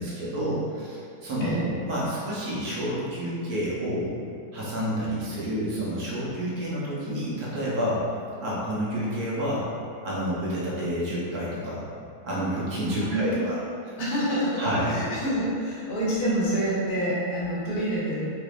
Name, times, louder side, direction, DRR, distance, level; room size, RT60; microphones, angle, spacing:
voice 1, 0.0-4.1 4.5-8.1 8.4-9.7 10.0-11.8 12.2-13.6 14.6-15.0, equal, 75° right, -7 dB, 1.4 m, -29 dB
voice 2, 12.9-13.6 14.0-18.3, equal, 75° left, -7 dB, 1.4 m, -27 dB
3.4 x 3.3 x 2.4 m, 2.4 s
omnidirectional pair, 1.7 m